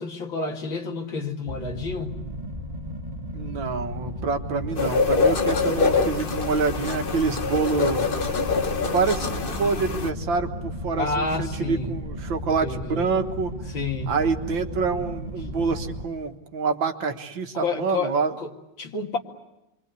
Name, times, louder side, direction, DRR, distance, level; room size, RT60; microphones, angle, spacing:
voice 1, 0.0-2.1 11.0-11.9 12.6-13.0 13.7-14.1 17.5-18.5 18.8-19.2, left 3 dB, 80° left, 3.0 m, -29 dB
sound 1, 1.5-16.0, equal, 20° right, 1.8 m, -34 dB
voice 2, 3.3-8.0 8.9-13.5 14.1-18.4, right 4 dB, 75° right, 2.2 m, -26 dB
sound 2, 4.8-10.1, left 4 dB, 35° left, 1.0 m, -25 dB
27.5 x 24.0 x 8.3 m
omnidirectional pair, 2.1 m